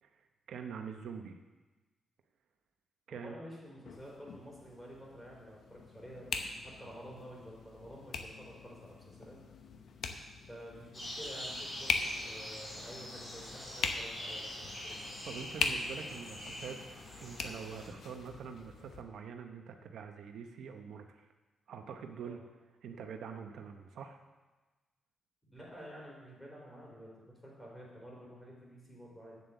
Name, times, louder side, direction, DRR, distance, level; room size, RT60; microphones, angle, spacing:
voice 1, 0.0-1.4 3.1-3.4 15.3-21.3 21.7-22.4 22.8-24.2, right 6 dB, 80° right, 5 dB, 0.8 m, -45 dB
voice 2, 3.1-9.4 10.5-15.0 22.2-22.4 25.4-29.4, equal, 10° left, -4 dB, 4.2 m, -50 dB
sound 1, 3.8-19.0, left 4 dB, 70° left, 0.9 m, -41 dB
sound 2, 10.9-17.9, left 1 dB, 30° left, 3.3 m, -44 dB
8.5 x 7.6 x 7.1 m, 1.2 s
cardioid pair, 115°, 0 cm